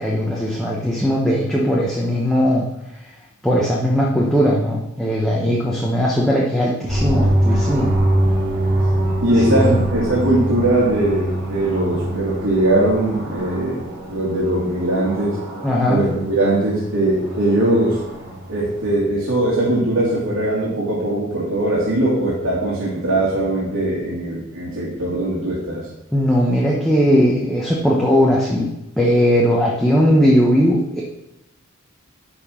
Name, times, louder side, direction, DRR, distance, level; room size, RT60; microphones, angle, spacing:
voice 1, 0.0-2.7 3.4-7.9 9.5-9.9 15.6-16.0 26.1-28.7 29.0-31.0, equal, ahead, -4 dB, 1.0 m, -18 dB
voice 2, 5.4-5.8 9.2-15.4 15.9-18.0 18.5-25.9, right 1 dB, 90° right, -7 dB, 2.4 m, -20 dB
sound 1, 6.9-18.9, right 1 dB, 20° right, 3.4 m, -24 dB
10.5 x 4.5 x 5.7 m, 0.88 s
head